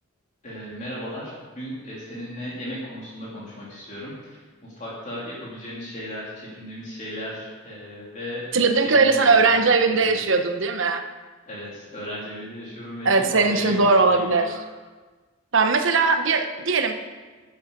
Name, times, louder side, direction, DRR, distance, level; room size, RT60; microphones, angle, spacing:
voice 1, 0.4-8.5 8.8-10.2 11.5-14.5, equal, 40° left, -6 dB, 3.1 m, -36 dB
voice 2, 8.5-11.0 13.0-14.6 15.5-16.9, right 4 dB, 70° right, 6 dB, 1.1 m, -19 dB
12.5 x 8.9 x 5.3 m, 1.3 s
head